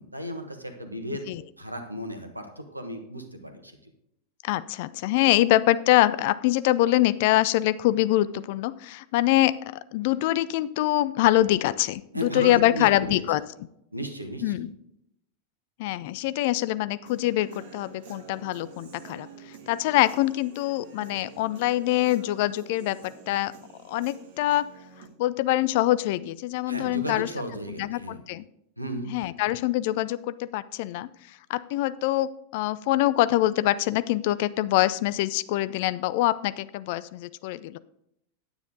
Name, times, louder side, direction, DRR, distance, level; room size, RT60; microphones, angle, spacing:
voice 1, 0.0-1.2 1.6-3.9 12.1-13.2 13.9-14.7 26.7-28.2 28.8-29.1, equal, 85° right, 6 dB, 1.3 m, -35 dB
voice 2, 4.4-13.4 14.4-14.7 15.8-23.5 23.9-24.7 25.2-27.3 27.8-28.4 29.1-31.1 31.5-37.8, left 15 dB, 50° left, 16 dB, 0.4 m, -24 dB
Human voice / Guitar, 17.1-25.1, right 5 dB, 50° right, 1.7 m, -48 dB
9.7 x 9.4 x 3.8 m, 0.78 s
figure-of-eight pair, 90°, 0 cm